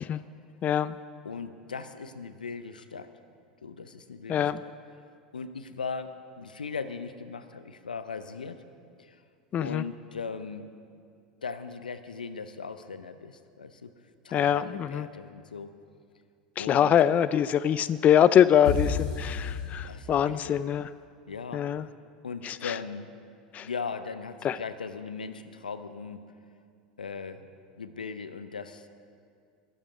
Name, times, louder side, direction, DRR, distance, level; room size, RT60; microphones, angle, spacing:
voice 1, 0.6-1.0 4.3-4.6 9.5-9.8 14.3-15.1 16.6-20.9 21.5-21.9 22.4-22.7 23.5-23.7 24.4-24.6, left 9 dB, 35° left, 16 dB, 0.3 m, -24 dB
voice 2, 1.2-3.1 3.6-4.7 5.3-8.6 9.0-9.2 9.6-10.7 11.4-13.9 14.2-15.8 16.6-16.9 19.8-20.6 21.3-21.6 22.2-23.1 23.6-26.2 27.0-27.5 27.8-28.9, left 5 dB, 90° left, 11 dB, 0.7 m, -38 dB
sound 1, 18.6-20.5, left 6 dB, 70° left, 1.6 m, -31 dB
22.0 x 7.9 x 5.0 m, 2.3 s
hypercardioid pair, 85°, 4 cm